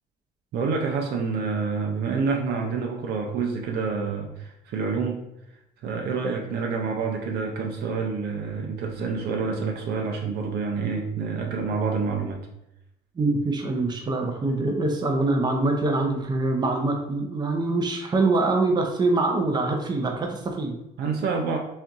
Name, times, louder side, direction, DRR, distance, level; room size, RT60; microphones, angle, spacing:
voice 1, 0.5-5.2 5.8-12.4 21.0-21.6, right 5 dB, 70° right, 2 dB, 0.6 m, -27 dB
voice 2, 13.2-20.8, right 2 dB, 25° right, 2 dB, 0.7 m, -24 dB
4.4 x 2.6 x 3.5 m, 0.85 s
cardioid pair, 110°, 17 cm